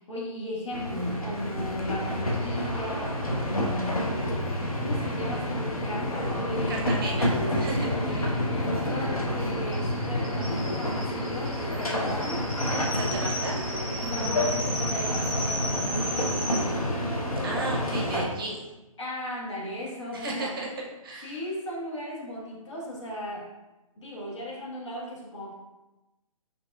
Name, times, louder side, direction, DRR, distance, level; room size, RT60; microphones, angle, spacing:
voice 1, 0.0-7.3 7.9-12.5 13.4-13.5 14.0-16.8 19.0-20.6 21.2-23.5 24.0-25.5, left 1 dB, 55° left, -4 dB, 1.3 m, -37 dB
sound 1, 0.7-18.3, left 1 dB, 80° left, 0.9 m, -29 dB
sound 2, 2.6-8.0, left 1 dB, 20° left, 1.3 m, -45 dB
voice 2, 6.7-7.3 7.5-8.3 12.9-13.7 17.4-18.6 20.1-20.7 21.0-21.3, right 3 dB, 40° right, -1 dB, 0.8 m, -34 dB
sound 3, 7.9-16.6, equal, 10° right, 1.2 m, -36 dB
5.1 x 3.4 x 2.3 m, 1.0 s
figure-of-eight pair, 135°, 18 cm